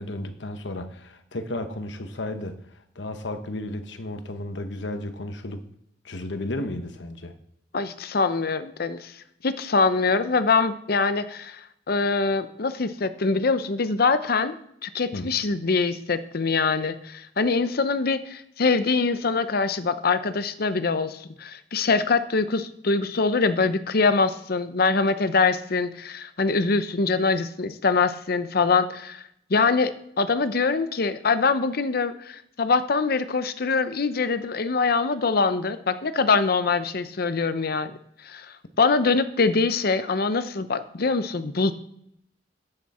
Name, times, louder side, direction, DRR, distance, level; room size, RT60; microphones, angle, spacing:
voice 1, 0.0-5.7 6.0-7.3 15.1-15.4, left 1 dB, 75° left, 8 dB, 1.1 m, -33 dB
voice 2, 7.7-9.1 9.4-14.6 14.8-29.2 29.5-37.9 38.2-38.5 38.8-41.7, left 4 dB, 55° left, 12 dB, 0.7 m, -24 dB
10.5 x 9.0 x 4.3 m, 0.73 s
head